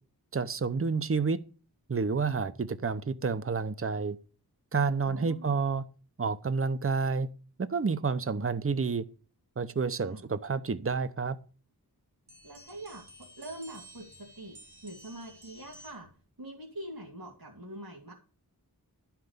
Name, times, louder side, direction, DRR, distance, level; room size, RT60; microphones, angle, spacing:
voice 1, 0.3-1.4 1.9-4.2 4.7-5.8 6.2-7.3 7.6-9.1 9.6-11.4, right 4 dB, 35° right, 0.8 m, -29 dB
voice 2, 5.1-5.6 10.0-10.3 12.4-13.0 13.4-14.6 14.8-16.1 16.4-18.1, right 1 dB, 65° right, 2.5 m, -44 dB
sound 1, 12.3-16.2, right 1 dB, 85° right, 2.3 m, -53 dB
12.0 x 5.9 x 6.6 m
wide cardioid pair, 60°, 37 cm